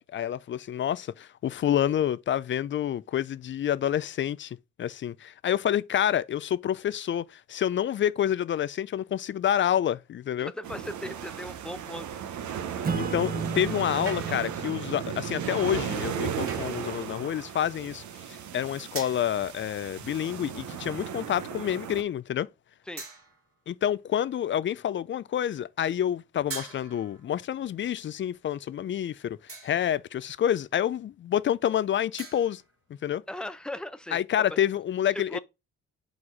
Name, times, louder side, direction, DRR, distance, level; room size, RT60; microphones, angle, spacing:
voice 1, 0.0-10.5 13.0-18.0 18.5-22.5 23.7-32.6 33.0-33.2 34.1-35.4, left 10 dB, 40° left, 0.4 m, -28 dB
voice 2, 10.4-12.1 22.9-23.0 33.3-34.6 35.3-35.4, left 1 dB, 5° left, 0.6 m, -38 dB
sound 1, 10.6-22.0, right 8 dB, 75° right, 0.9 m, -36 dB
Acoustic guitar / Strum, 12.8-17.8, right 4 dB, 30° right, 0.9 m, -37 dB
sound 2, 14.1-14.7 16.5-16.9 18.9-19.4 20.5-20.9 21.5-21.7 23.0-23.6 26.5-27.3 29.5-30.0 32.2-32.7, right 4 dB, 50° right, 2.1 m, -42 dB
4.8 x 4.1 x 4.8 m
cardioid pair, 90°, 30 cm